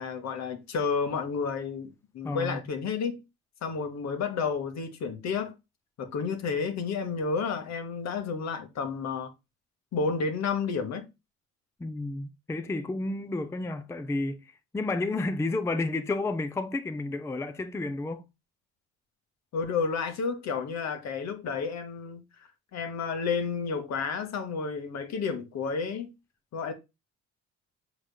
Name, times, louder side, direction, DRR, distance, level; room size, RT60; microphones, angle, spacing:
voice 1, 0.0-3.2 3.6-5.5 6.0-9.3 9.9-11.0 19.5-22.2 22.7-26.1 26.5-26.7, left 5 dB, 60° left, 1.0 m, -31 dB
voice 2, 2.2-2.6 11.8-18.2, left 2 dB, 10° left, 0.4 m, -31 dB
5.0 x 4.0 x 2.2 m
supercardioid pair, 70°, 31 cm